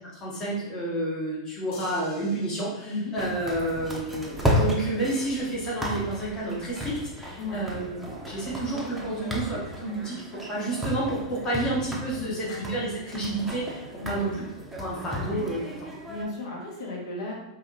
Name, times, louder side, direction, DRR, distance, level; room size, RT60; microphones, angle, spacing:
voice 1, 0.2-10.2 10.5-14.4 14.8-15.9, right 1 dB, 25° left, -6 dB, 1.4 m, -30 dB
sound 1, 1.7-4.2 5.9-6.0, left 3 dB, 50° left, 1.0 m, -49 dB
sound 2, 3.2-16.2, equal, 5° right, 0.7 m, -33 dB
voice 2, 12.2-12.7 14.0-14.3 16.1-17.3, left 2 dB, 65° left, -4 dB, 1.4 m, -34 dB
4.9 x 2.7 x 2.6 m, 0.89 s
hypercardioid pair, 120°, 3 cm